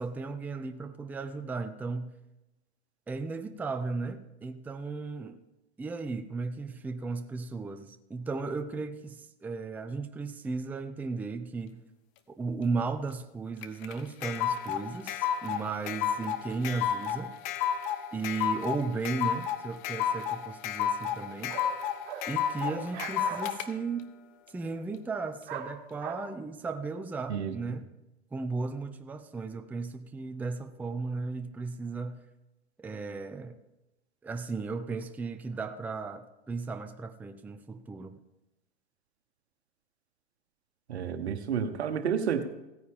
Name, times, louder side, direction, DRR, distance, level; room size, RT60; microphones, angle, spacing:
voice 1, 0.0-2.2 3.1-5.4 5.8-11.8 12.3-17.3 18.1-21.6 22.3-24.1 24.5-27.9 28.3-32.2 32.8-33.6 34.2-38.2, right 4 dB, 5° right, 8 dB, 0.5 m, -35 dB
sound 1, 13.6-23.7, left 9 dB, 50° left, 1.0 m, -31 dB
sound 2, 21.1-21.2 21.5-21.7 22.1-22.3 22.6-23.4 25.5-25.7 26.0-26.1, right 9 dB, 60° right, 1.9 m, -39 dB
voice 2, 40.9-42.4, right 7 dB, 85° right, 9 dB, 1.2 m, -30 dB
16.0 x 9.4 x 3.6 m, 0.95 s
hypercardioid pair, 110°, 32 cm